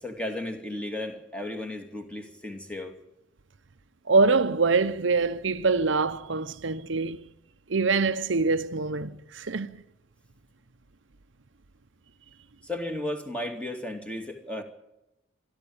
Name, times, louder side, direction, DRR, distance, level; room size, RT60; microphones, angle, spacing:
voice 1, 0.0-2.9 12.6-14.6, left 1 dB, 5° left, 2.6 m, -34 dB
voice 2, 4.1-7.2 7.7-9.8, right 4 dB, 65° right, 0.8 m, -24 dB
25.5 x 12.5 x 8.8 m
head